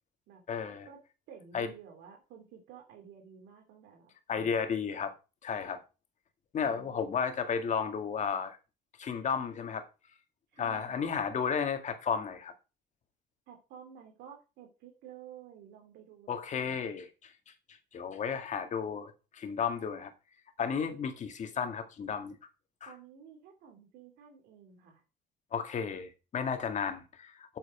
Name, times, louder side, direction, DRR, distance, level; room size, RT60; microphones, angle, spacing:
voice 1, 0.5-0.9 1.5-1.7 4.3-5.1 5.4-5.8 6.5-8.6 9.0-9.9 10.6-12.5 16.3-17.3 17.9-20.1 20.6-22.4 22.8-22.9 25.5-27.6, left 6 dB, 45° left, 2.0 m, -33 dB
voice 2, 1.3-4.6 6.6-7.0 10.5-11.3 13.5-16.8 22.8-25.0, right 8 dB, 85° right, 3.1 m, -53 dB
8.6 x 7.2 x 5.0 m
cardioid pair, 110°, 17 cm